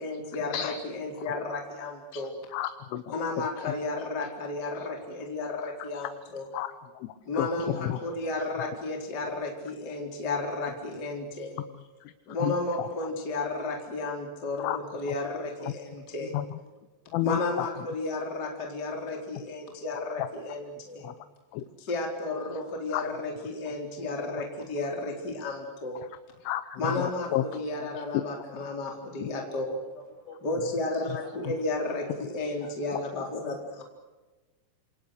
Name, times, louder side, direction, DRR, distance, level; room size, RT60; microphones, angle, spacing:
voice 1, 0.0-2.3 3.1-6.5 7.2-11.6 12.3-16.3 17.2-21.1 21.8-26.0 26.8-29.8 30.4-33.8, left 2 dB, 20° left, 1 dB, 4.1 m, -33 dB
voice 2, 2.5-3.1 3.6-3.7 5.8-5.9 6.5-8.0 12.3-12.9 14.6-14.8 15.6-15.7 16.3-16.5 17.1-17.7 20.2-20.3 21.0-21.1 21.5-21.6 22.9-23.1 26.4-27.4 29.2-29.3 32.9-33.0, left 13 dB, 75° left, 11 dB, 3.3 m, -32 dB
voice 3, 29.8-31.6 32.0-32.1 32.4-32.8, left 3 dB, 45° left, 1 dB, 9.5 m, -51 dB
28.5 x 27.5 x 6.6 m, 1.2 s
omnidirectional pair, 5.9 m